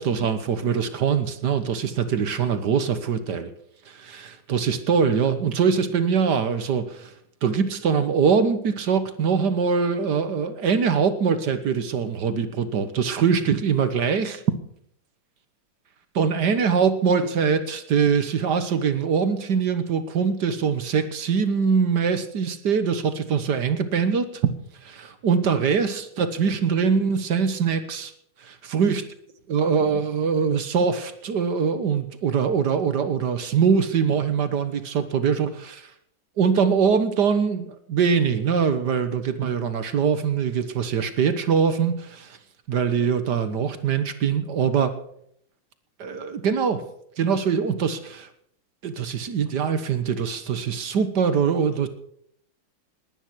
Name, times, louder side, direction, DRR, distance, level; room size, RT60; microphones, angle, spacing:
voice 1, 0.0-3.5 3.9-7.1 7.4-14.4 16.2-24.5 24.8-28.1 28.4-29.0 29.5-35.9 36.4-42.4 42.7-44.9 46.0-46.8 47.2-48.3 48.8-51.9, right 6 dB, 60° right, 11 dB, 1.6 m, -23 dB
20.0 x 9.9 x 6.2 m, 0.68 s
omnidirectional pair, 2.3 m